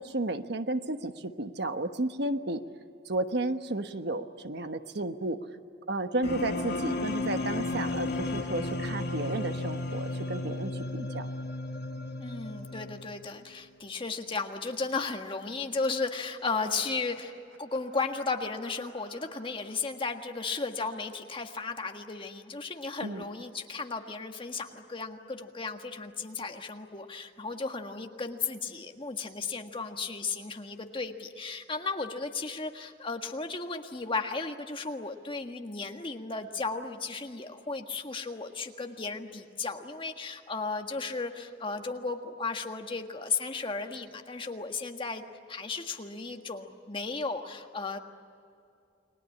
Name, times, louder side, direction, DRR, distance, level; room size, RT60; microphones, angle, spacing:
voice 1, 0.0-2.6 3.0-5.4 5.9-11.3 23.0-23.2, right 2 dB, 65° right, 8 dB, 1.2 m, -32 dB
sound 1, 6.2-13.3, left 2 dB, 60° left, 2.4 m, -34 dB
voice 2, 12.2-17.3 17.6-48.0, left 4 dB, 30° left, 4 dB, 1.7 m, -35 dB
sound 2, 16.5-20.1, right 2 dB, 85° right, 3.9 m, -53 dB
30.0 x 21.5 x 8.6 m, 2.5 s
head